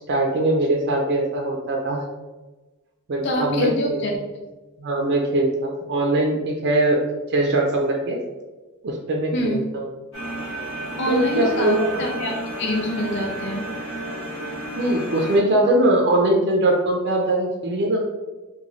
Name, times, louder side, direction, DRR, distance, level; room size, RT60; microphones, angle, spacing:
voice 1, 0.1-2.0 3.1-4.0 4.8-7.0 7.3-8.2 8.8-9.9 11.1-11.9 14.8-18.0, right 1 dB, 55° right, 1 dB, 0.4 m, -21 dB
voice 2, 3.2-4.1 9.3-9.6 11.0-13.7, left 1 dB, 55° left, 0 dB, 0.5 m, -25 dB
sound 1, 10.1-15.4, right 1 dB, 80° left, 1.1 m, -32 dB
3.1 x 2.2 x 3.7 m, 1.2 s
head